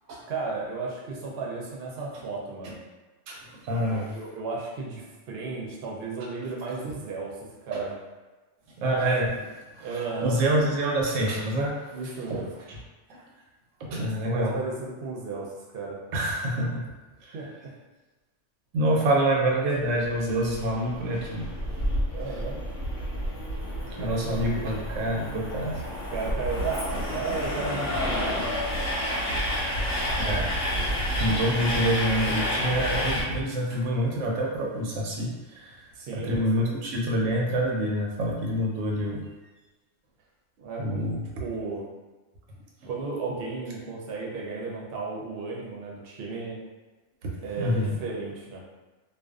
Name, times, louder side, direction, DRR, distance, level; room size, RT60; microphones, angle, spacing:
voice 1, 0.3-2.8 3.8-7.3 7.6-7.9 9.8-10.4 11.9-12.5 13.9-16.0 17.3-17.7 18.9-19.1 22.1-22.6 23.8-24.3 24.5-24.8 26.1-28.6 30.6-30.9 36.0-36.7 40.6-41.8 42.9-46.6 47.4-48.6, right 4 dB, 60° right, -3 dB, 0.7 m, -34 dB
voice 2, 3.3-4.1 7.7-7.8 8.8-9.5 9.8-11.9 12.3-12.4 12.7-12.8 13.8-14.6 16.1-16.9 17.2-17.4 18.7-21.5 23.9-25.8 29.7-30.5 30.9-35.8 36.1-39.2 40.8-41.2 47.2-47.3 47.6-47.9, right 1 dB, 90° right, -2 dB, 1.0 m, -27 dB
Train, 19.7-33.2, equal, 90° left, 1.2 m, -30 dB
2.5 x 2.2 x 2.3 m, 1.2 s
omnidirectional pair, 1.3 m